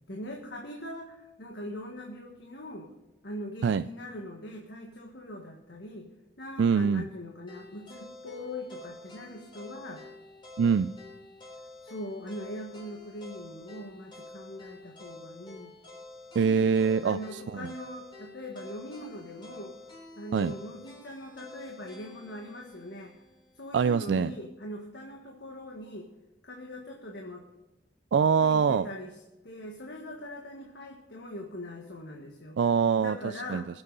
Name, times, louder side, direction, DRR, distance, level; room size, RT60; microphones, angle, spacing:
voice 1, 0.1-2.9 3.2-6.1 6.4-10.0 11.8-15.7 16.3-16.7 17.0-19.7 20.2-23.1 23.6-26.1 26.4-27.4 28.4-29.1 29.4-32.6 33.0-33.7, left 1 dB, 70° left, 1 dB, 1.6 m, -41 dB
voice 2, 6.6-7.1 10.6-10.9 16.4-17.7 20.3-20.5 23.7-24.3 28.1-28.9 32.6-33.2 33.5-33.6, right 6 dB, 75° right, 12 dB, 0.3 m, -24 dB
sound 1, 7.5-23.6, left 2 dB, 30° left, 3.6 m, -49 dB
21.5 x 8.0 x 4.0 m, 1.0 s
head